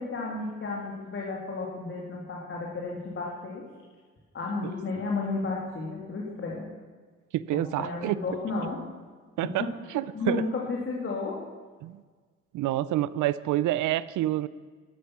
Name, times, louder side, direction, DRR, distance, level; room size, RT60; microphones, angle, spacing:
voice 1, 0.0-3.6 4.3-6.7 7.5-8.8 9.4-9.7 10.1-11.4, left 3 dB, 40° left, -2 dB, 2.7 m, -33 dB
voice 2, 7.3-8.2 9.4-10.5 11.8-12.0 12.5-14.5, right 14 dB, 85° right, 17 dB, 0.5 m, -28 dB
12.5 x 11.5 x 6.1 m, 1.5 s
cardioid pair, 90°, 30 cm